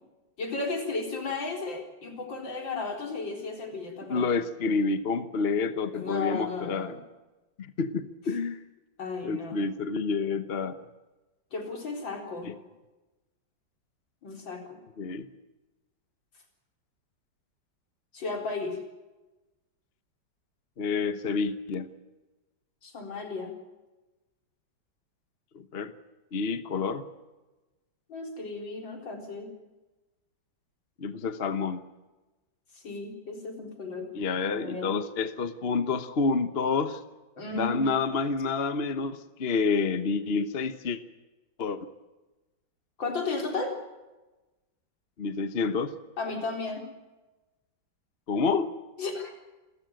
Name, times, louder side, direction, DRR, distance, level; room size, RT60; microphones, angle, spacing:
voice 1, 0.4-4.3 5.9-7.0 9.0-9.6 11.5-12.5 14.2-14.8 18.1-18.8 22.8-23.5 28.1-29.5 32.7-34.1 34.5-34.9 37.4-37.9 43.0-43.8 46.2-46.9 49.0-49.3, left 3 dB, 75° left, 2 dB, 4.7 m, -34 dB
voice 2, 4.1-7.0 7.6-8.6 9.2-10.8 12.4-12.5 15.0-15.3 20.8-21.9 25.5-25.9 26.3-27.1 31.0-31.8 34.1-37.0 37.5-41.0 41.6-41.9 45.2-46.0 48.3-48.7, left 4 dB, 40° left, 11 dB, 1.1 m, -28 dB
28.5 x 14.5 x 9.1 m, 1.1 s
omnidirectional pair, 2.1 m